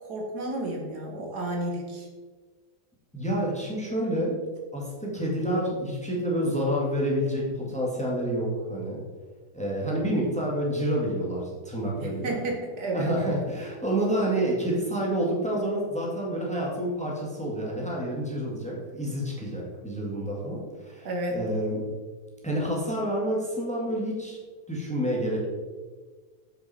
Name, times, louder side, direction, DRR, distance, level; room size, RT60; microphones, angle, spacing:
voice 1, 0.0-2.1 12.0-13.1 21.0-21.4, right 1 dB, 70° right, 1 dB, 1.8 m, -31 dB
voice 2, 3.1-4.4 4.7-9.0 9.5-12.4 12.9-21.8 22.4-24.4 24.7-25.4, right 1 dB, 5° left, -3 dB, 1.7 m, -28 dB
7.5 x 6.6 x 4.2 m, 1.4 s
omnidirectional pair, 1.8 m